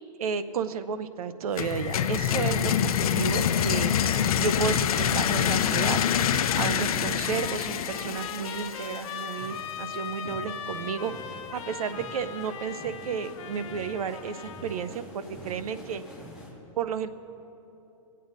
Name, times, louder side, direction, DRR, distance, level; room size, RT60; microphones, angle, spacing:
voice 1, 0.2-3.9 4.4-6.0 6.6-11.1 11.5-16.0 16.8-17.1, right 6 dB, 80° right, 13 dB, 0.7 m, -32 dB
sound 1, 1.6-9.3, left 9 dB, 80° left, 0.6 m, -26 dB
Trumpet, 7.2-14.9, left 7 dB, 55° left, 1.0 m, -39 dB
sound 2, 9.4-16.5, left 1 dB, 5° right, 2.1 m, -47 dB
22.0 x 8.6 x 4.1 m, 3.0 s
hypercardioid pair, 160°, 18 cm